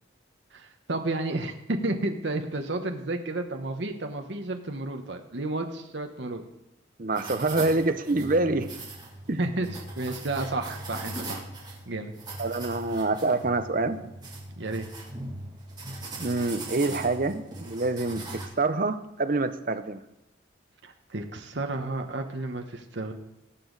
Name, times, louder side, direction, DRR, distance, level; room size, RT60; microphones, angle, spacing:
voice 1, 0.5-6.4 9.4-9.7 10.0-11.4 11.9-12.1 14.6-14.9 20.8-23.1, right 2 dB, 60° right, 4 dB, 1.1 m, -31 dB
voice 2, 7.0-8.7 9.3-9.4 12.4-14.0 16.2-20.0, right 2 dB, 45° right, 10 dB, 0.7 m, -26 dB
sound 1, 7.1-18.5, right 2 dB, 20° right, 2.2 m, -40 dB
18.5 x 7.2 x 4.0 m, 0.93 s
head